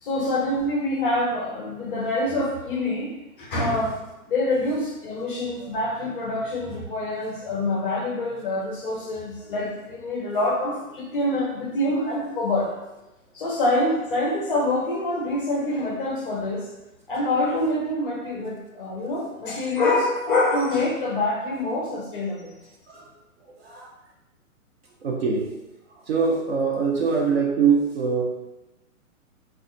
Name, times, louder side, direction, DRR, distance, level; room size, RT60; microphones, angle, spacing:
voice 1, 0.0-3.1 3.4-4.0 4.3-12.7 13.3-16.7 17.1-22.5, left 2 dB, 40° left, -2 dB, 0.7 m, -26 dB
voice 2, 23.6-23.9 25.0-25.5 26.0-28.2, right 5 dB, 45° right, -1 dB, 0.6 m, -23 dB
2.4 x 2.4 x 3.8 m, 0.97 s
hypercardioid pair, 160°, 43 cm